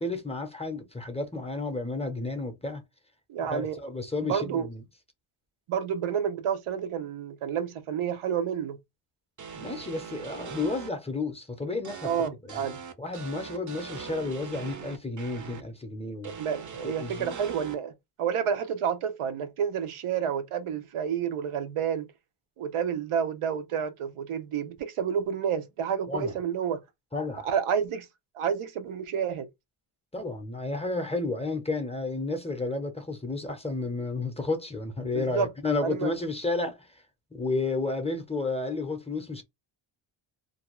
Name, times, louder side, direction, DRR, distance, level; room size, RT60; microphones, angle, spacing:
voice 1, 0.0-2.8 3.5-4.8 9.6-12.7 13.0-16.3 16.8-17.4 26.1-26.3 27.1-27.5 30.1-37.0 37.3-39.4, left 3 dB, 15° left, 0.5 m, -32 dB
voice 2, 3.3-3.8 4.2-4.7 5.7-8.8 12.0-12.8 16.4-17.9 18.2-22.1 22.6-26.8 27.4-28.1 28.4-29.5 35.1-35.5 35.8-36.1, right 8 dB, 85° right, 0.7 m, -29 dB
sound 1, 9.4-10.9 11.8-15.6 16.2-17.7, right 6 dB, 40° right, 0.5 m, -41 dB
2.6 x 2.2 x 2.9 m
wide cardioid pair, 140°, 50 cm